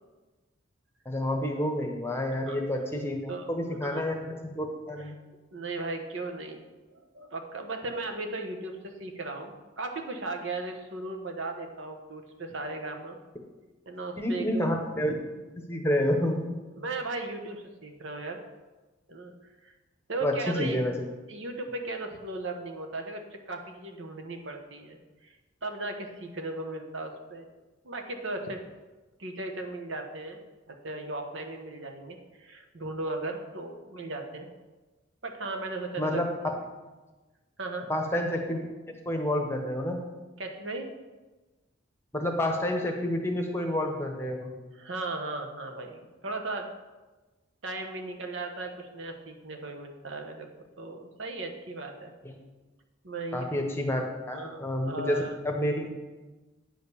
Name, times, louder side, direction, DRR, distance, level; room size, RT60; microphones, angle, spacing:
voice 1, 1.0-5.2 14.2-15.1 15.6-16.6 20.2-20.9 36.0-36.3 37.9-38.6 39.0-40.0 42.1-44.5 52.2-52.4 53.3-55.2 55.4-55.9, left 1 dB, 10° left, 2 dB, 1.0 m, -29 dB
voice 2, 5.5-6.6 6.9-8.7 9.0-13.2 13.9-14.7 16.8-18.4 19.1-19.3 19.6-19.7 20.1-20.8 21.3-25.0 25.2-25.3 25.6-27.4 27.8-28.6 29.2-30.4 30.7-34.5 35.2-36.2 37.6-37.9 40.4-40.9 44.8-46.7 47.6-50.5 50.8-52.1 53.0-53.5 54.3-55.4, right 2 dB, 70° right, 4 dB, 1.2 m, -36 dB
9.4 x 5.2 x 6.8 m, 1.2 s
head